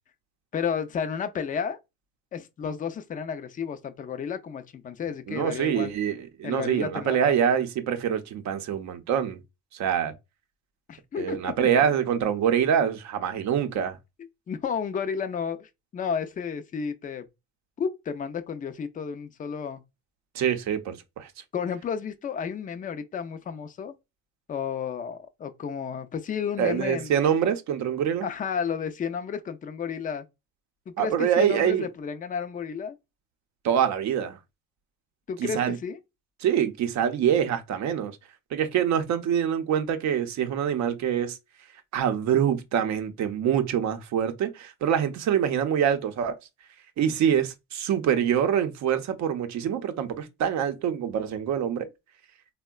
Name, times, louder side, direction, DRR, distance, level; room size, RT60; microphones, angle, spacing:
voice 1, 0.5-1.8 2.3-5.9 6.4-7.4 10.9-11.7 14.5-17.2 17.8-19.8 21.5-23.9 24.5-27.1 28.2-30.3 30.9-33.0 35.3-36.0, left 6 dB, 25° left, 0.4 m, -32 dB
voice 2, 5.3-9.4 9.7-10.1 11.2-14.0 20.3-21.3 26.6-28.3 31.0-31.9 33.6-34.4 35.4-35.8 36.4-38.2 38.5-41.4 41.9-46.4 47.0-51.9, right 9 dB, 55° right, 0.7 m, -25 dB
3.5 x 2.1 x 2.2 m
supercardioid pair, 85°, 33 cm